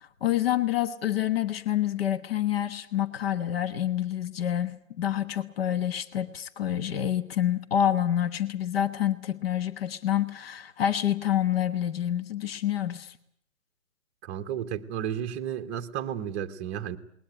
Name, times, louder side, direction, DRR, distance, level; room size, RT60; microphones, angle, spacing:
voice 1, 0.2-13.2, left 11 dB, 45° left, 13 dB, 1.3 m, -27 dB
voice 2, 14.2-17.0, right 9 dB, 15° right, 5 dB, 0.9 m, -33 dB
20.0 x 20.0 x 9.1 m, 0.69 s
figure-of-eight pair, 140°, 40 cm